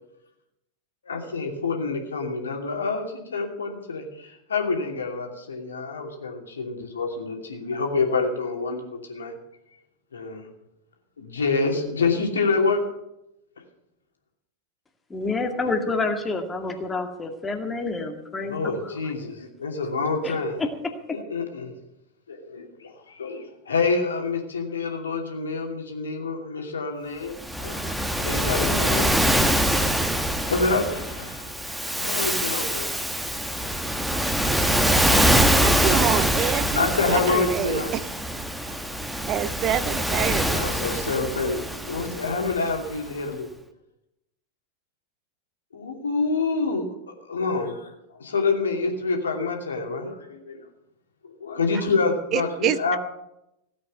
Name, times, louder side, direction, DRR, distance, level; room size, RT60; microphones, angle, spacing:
voice 1, 1.1-9.4 10.1-10.5 11.2-12.8 18.4-20.6 21.1-21.7 22.3-29.1 30.5-31.5 31.9-32.9 35.8-36.0 36.7-37.9 40.5-43.5 45.7-50.7 51.4-53.0, left 4 dB, 70° left, 2 dB, 2.7 m, -27 dB
voice 2, 15.1-18.9 20.2-21.2, left 3 dB, 15° left, 4 dB, 2.1 m, -29 dB
Waves surf, 27.4-42.9, equal, ahead, 1.2 m, -24 dB
voice 3, 35.6-38.1 39.3-40.7 52.3-53.0, right 11 dB, 35° right, 16 dB, 0.6 m, -27 dB
16.5 x 8.6 x 7.9 m, 0.86 s
figure-of-eight pair, 90°, 0 cm